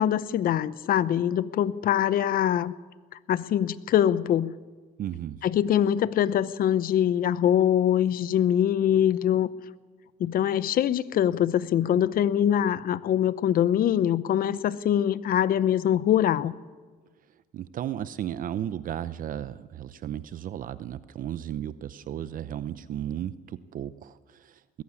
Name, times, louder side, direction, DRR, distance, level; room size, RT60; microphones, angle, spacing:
voice 1, 0.0-2.7 3.3-4.5 5.4-9.5 10.2-16.5, left 10 dB, 60° left, 16 dB, 0.9 m, -23 dB
voice 2, 5.0-5.4 17.5-24.8, right 10 dB, 55° right, 14 dB, 0.7 m, -34 dB
21.0 x 15.5 x 9.8 m, 1.4 s
cardioid pair, 110°, 17 cm